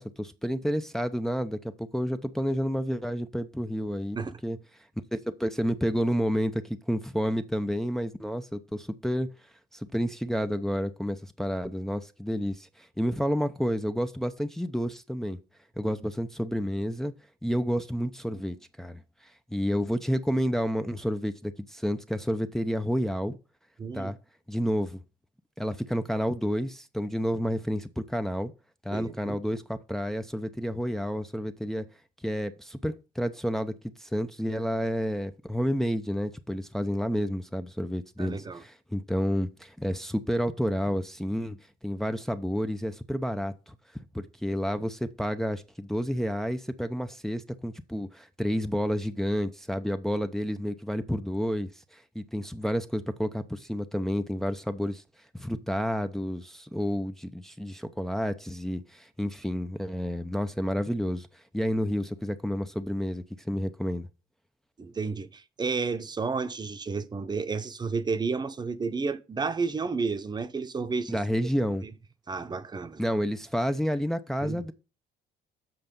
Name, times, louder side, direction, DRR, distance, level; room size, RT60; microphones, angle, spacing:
voice 1, 0.0-4.2 4.4-4.6 5.1-9.3 9.7-15.4 15.8-17.1 17.4-19.0 19.5-23.4 23.9-24.2 24.5-25.0 25.6-28.5 28.8-31.9 32.2-33.7 34.0-43.7 44.1-55.0 55.4-61.3 61.5-64.1 71.1-71.8 73.0-74.7, equal, ahead, 0.7 m, -30 dB
voice 2, 23.8-24.1 28.9-29.4 38.2-38.6 64.8-71.2 71.8-71.9 72.3-73.0 74.4-74.6, right 4 dB, 25° right, 1.0 m, -31 dB
7.8 x 5.7 x 5.3 m
cardioid pair, 110°, 17 cm